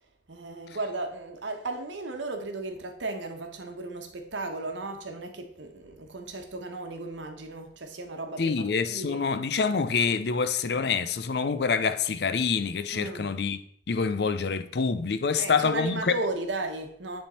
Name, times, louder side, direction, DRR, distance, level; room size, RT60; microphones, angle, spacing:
voice 1, 0.3-9.2 12.9-13.3 15.4-17.2, right 2 dB, 85° right, 1.1 m, -35 dB
voice 2, 8.4-13.6 13.9-16.1, left 5 dB, 60° left, 0.5 m, -26 dB
9.7 x 3.7 x 4.3 m
head